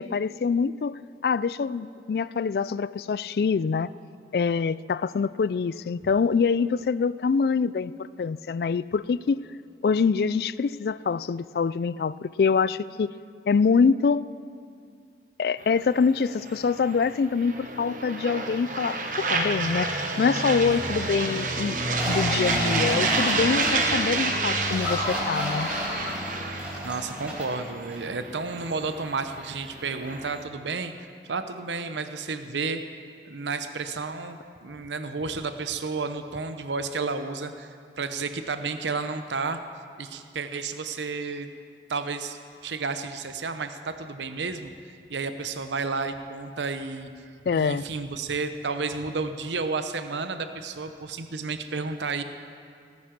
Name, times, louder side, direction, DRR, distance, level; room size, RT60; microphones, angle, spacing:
voice 1, 0.0-3.9 4.3-9.4 9.8-13.1 13.5-14.2 15.4-21.8 22.0-25.7 47.5-47.8, left 5 dB, 60° left, 18 dB, 0.3 m, -25 dB
sound 1, 15.6-30.4, right 3 dB, 45° right, 1.0 m, -29 dB
voice 2, 20.7-21.1 26.8-30.9 31.3-32.8 33.2-39.6 40.0-41.5 41.9-44.7 45.1-47.1 47.5-52.2, right 4 dB, 90° right, 9 dB, 0.8 m, -32 dB
sound 2, 21.9-27.6 27.9-28.0, equal, 10° right, 4.4 m, -33 dB
sound 3, 24.7-27.2, left 1 dB, 75° left, 4.1 m, -35 dB
19.0 x 9.6 x 5.9 m, 2.4 s
head